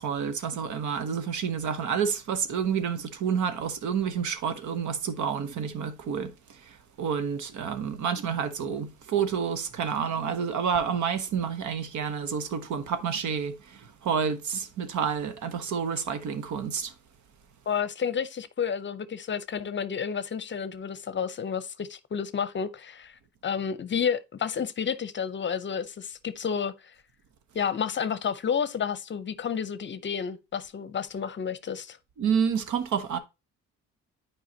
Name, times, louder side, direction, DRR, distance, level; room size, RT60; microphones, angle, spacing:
voice 1, 0.0-16.9 32.2-33.2, right 7 dB, 75° right, 1.0 m, -29 dB
voice 2, 17.7-26.9 27.5-32.0, left 7 dB, 40° left, 0.6 m, -31 dB
9.3 x 4.8 x 2.8 m
cardioid pair, 90°, 30 cm